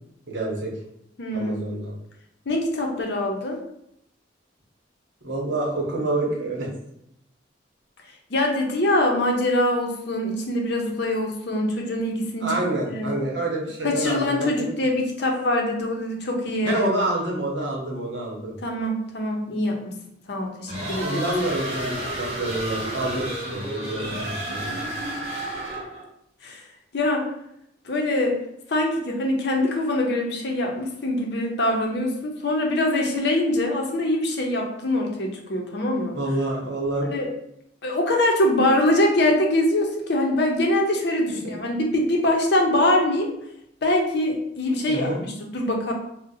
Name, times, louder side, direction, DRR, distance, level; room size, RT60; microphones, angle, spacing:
voice 1, 0.3-0.7 1.3-1.9 5.2-6.7 12.4-14.7 16.6-18.6 21.0-24.9 36.1-37.1 41.3-41.6 44.9-45.2, right 2 dB, 75° right, -2 dB, 0.9 m, -27 dB
voice 2, 1.2-1.7 2.5-3.6 8.3-13.1 13.8-16.8 18.6-19.9 20.3-21.3 26.4-26.6 26.9-27.2 27.8-28.4 28.7-36.2 37.1-37.3 37.8-43.3 43.8-45.9, left 1 dB, 60° left, 1 dB, 0.6 m, -23 dB
sound 1, 20.7-26.0, right 1 dB, 35° right, 0.8 m, -31 dB
2.6 x 2.1 x 4.0 m, 0.77 s
head